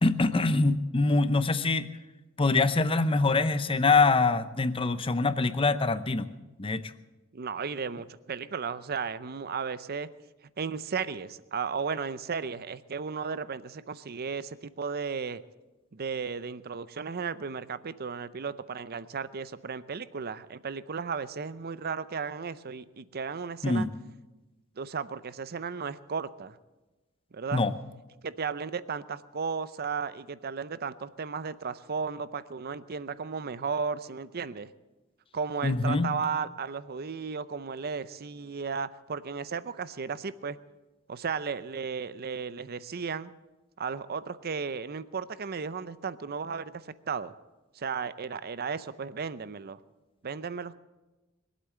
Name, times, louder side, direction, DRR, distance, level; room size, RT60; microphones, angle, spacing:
voice 1, 0.0-1.9 2.4-6.3 6.6-6.8 23.6-23.9 27.5-27.7 35.6-36.1, left 3 dB, 25° left, 12 dB, 0.7 m, -24 dB
voice 2, 7.3-10.1 10.6-15.4 15.9-23.9 24.8-26.6 27.3-27.6 28.2-34.7 35.3-40.6 41.1-43.3 43.8-46.7 47.1-47.3 47.8-49.8 50.2-50.8, right 5 dB, 50° right, 15 dB, 0.6 m, -34 dB
22.0 x 8.3 x 7.7 m, 1.1 s
head